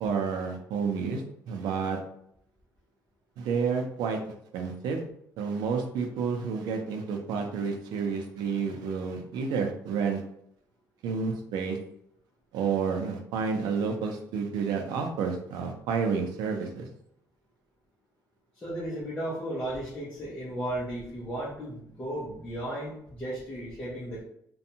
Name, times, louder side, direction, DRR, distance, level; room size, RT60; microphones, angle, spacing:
voice 1, 0.0-2.0 3.4-4.2 4.5-5.0 5.4-10.2 11.0-11.8 12.5-16.9, right 5 dB, 80° right, 3 dB, 0.5 m, -30 dB
voice 2, 18.6-24.2, right 1 dB, 20° left, -7 dB, 0.7 m, -35 dB
2.6 x 2.2 x 2.7 m, 0.72 s
cardioid pair, 160°, 7 cm